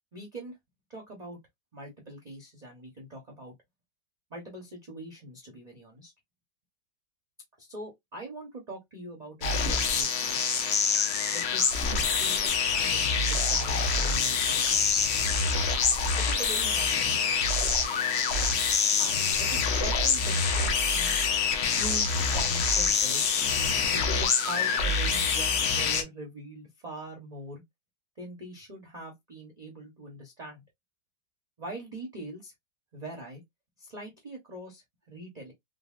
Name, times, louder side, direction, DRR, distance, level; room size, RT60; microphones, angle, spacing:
voice 1, 0.1-0.5 0.9-1.4 1.7-3.5 4.3-6.1 7.6-10.4 11.3-11.7 12.0-14.9 16.2-17.4 19.0-21.1 21.8-23.3 23.9-27.6 28.2-30.6 31.6-32.5 32.9-33.4 33.8-35.5, right 1 dB, 40° right, 0.6 m, -43 dB
sound 1, 9.4-26.0, left 5 dB, 80° left, 0.5 m, -26 dB
3.9 x 2.1 x 2.3 m
omnidirectional pair, 1.9 m